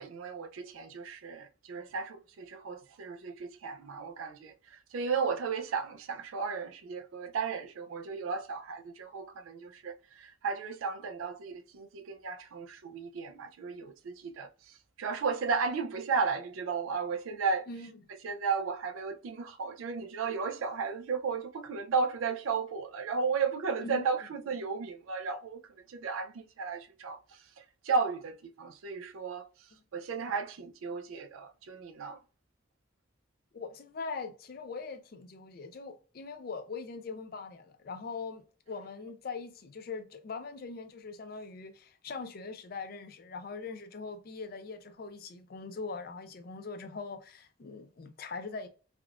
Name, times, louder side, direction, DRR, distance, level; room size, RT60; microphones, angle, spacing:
voice 1, 0.0-17.7 18.2-25.6 25.9-29.7 29.9-32.2, right 5 dB, 85° right, 0.4 m, -34 dB
voice 2, 33.5-48.7, left 4 dB, 45° left, 0.4 m, -41 dB
3.5 x 2.3 x 2.3 m
head